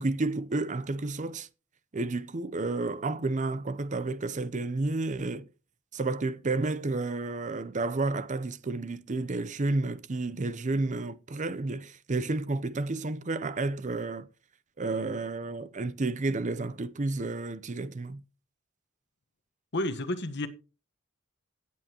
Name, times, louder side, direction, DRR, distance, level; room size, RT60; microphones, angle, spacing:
voice 1, 0.0-1.5 1.9-5.5 5.9-14.3 14.8-18.2, right 3 dB, 35° right, 0.6 m, -31 dB
voice 2, 19.7-20.5, left 1 dB, 55° left, 1.3 m, -30 dB
16.5 x 9.0 x 3.0 m
head